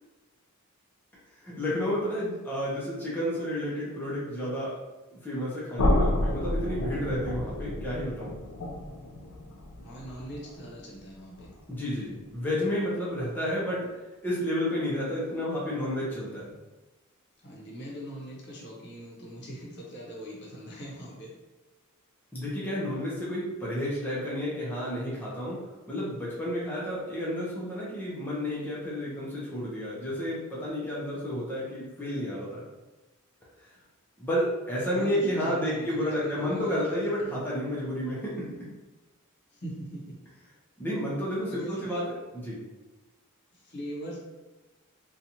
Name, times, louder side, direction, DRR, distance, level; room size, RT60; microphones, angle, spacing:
voice 1, 1.4-4.7 5.1-8.3 11.7-13.9 14.2-16.5 22.3-25.6 25.9-32.6 34.2-38.5 40.8-42.1 42.4-42.6, equal, 10° left, -7 dB, 0.6 m, -31 dB
sound 1, 5.8-11.7, left 1 dB, 80° left, 0.5 m, -30 dB
voice 2, 9.8-11.5 17.4-21.3 34.9-37.2 39.5-40.2 41.5-42.0 43.5-44.2, equal, 55° left, -4 dB, 0.8 m, -41 dB
2.7 x 2.3 x 2.8 m, 1.1 s
head